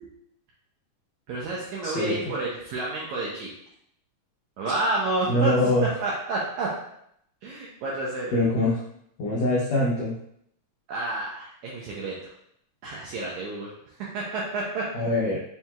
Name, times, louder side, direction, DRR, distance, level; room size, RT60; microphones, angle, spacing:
voice 1, 1.3-3.5 4.6-5.5 6.0-6.7 7.4-8.3 10.9-12.3 12.8-13.7 14.0-14.8, right 2 dB, 85° right, -4 dB, 1.7 m, -30 dB
voice 2, 1.8-2.2 5.3-5.9 8.3-8.8 9.2-10.1 14.9-15.4, left 1 dB, 85° left, -6 dB, 1.4 m, -23 dB
5.8 x 2.7 x 2.3 m, 0.73 s
omnidirectional pair, 4.0 m